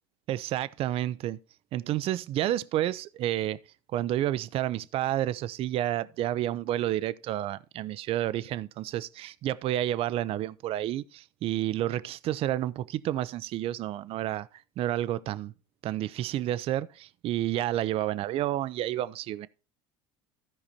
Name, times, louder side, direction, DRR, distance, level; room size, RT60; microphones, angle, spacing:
voice 1, 0.3-1.4 1.7-3.6 3.9-14.5 14.8-15.5 15.8-19.5, right 13 dB, 50° right, 0.5 m, -30 dB
14.0 x 4.9 x 4.2 m
supercardioid pair, 90°, 12 cm